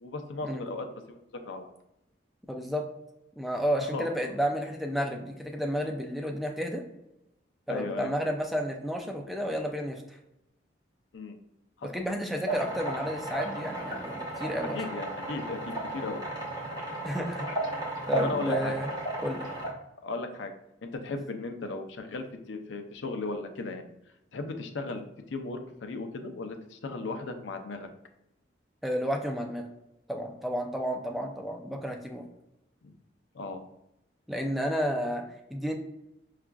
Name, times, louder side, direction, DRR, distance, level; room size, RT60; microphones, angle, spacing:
voice 1, 0.0-1.7 3.9-4.1 7.7-8.1 11.1-11.3 11.8-11.9 14.7-16.2 18.1-18.7 20.0-20.5 20.9-23.9 24.3-27.9 32.8-32.9 33.3-33.6, left 3 dB, 80° left, 6 dB, 0.5 m, -36 dB
voice 2, 2.5-2.8 3.4-6.8 7.7-10.2 11.8-14.8 17.0-17.5 18.1-18.9 19.2-19.5 28.8-29.7 30.1-32.3 34.3-35.2 35.5-35.8, equal, ahead, 2 dB, 0.3 m, -31 dB
sound 1, 12.5-19.7, right 1 dB, 20° right, 0.9 m, -34 dB
5.7 x 2.4 x 2.3 m, 0.88 s
head